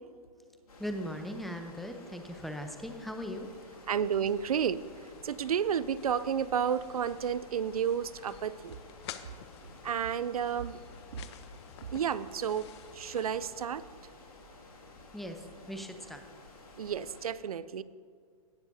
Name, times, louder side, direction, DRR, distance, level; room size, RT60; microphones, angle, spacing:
sound 1, 0.7-17.3, left 2 dB, 85° left, 2.2 m, -53 dB
voice 1, 0.8-3.5 15.1-16.2, equal, ahead, 5 dB, 0.6 m, -39 dB
voice 2, 3.9-4.8 5.2-8.8 9.8-10.8 11.9-12.7 12.9-13.8 16.8-17.8, right 8 dB, 85° right, 17 dB, 0.4 m, -31 dB
sound 2, 4.1-13.7, left 10 dB, 50° left, 0.6 m, -51 dB
17.0 x 7.1 x 2.7 m, 2.1 s
hypercardioid pair, 130°, 18 cm